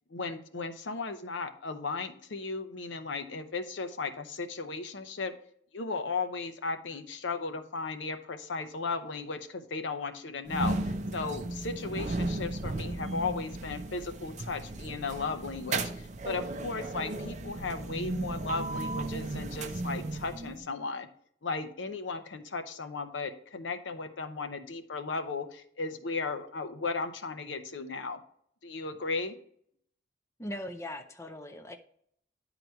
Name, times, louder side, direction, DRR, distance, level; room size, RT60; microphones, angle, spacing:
voice 1, 0.1-5.3 5.7-21.1 21.4-28.2 28.6-29.3, left 4 dB, 75° left, 8 dB, 0.8 m, -36 dB
sound 1, 10.5-20.6, right 2 dB, 40° right, 0.5 m, -35 dB
voice 2, 30.4-31.8, left 1 dB, 15° left, 6 dB, 0.5 m, -39 dB
10.5 x 4.0 x 4.5 m, 0.65 s
head